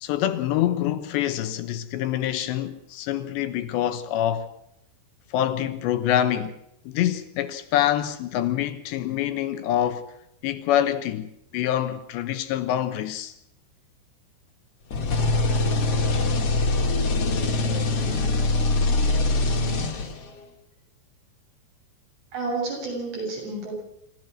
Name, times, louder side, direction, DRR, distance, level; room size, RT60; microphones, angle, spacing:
voice 1, 0.0-4.5 5.3-6.6 6.9-10.1 10.4-13.3, left 11 dB, 75° left, 2.9 m, -26 dB
sound 1, 14.9-20.4, left 2 dB, 45° left, 2.3 m, -23 dB
voice 2, 22.3-23.7, right 3 dB, 55° right, 9.3 m, -30 dB
28.0 x 14.5 x 6.4 m
omnidirectional pair, 5.6 m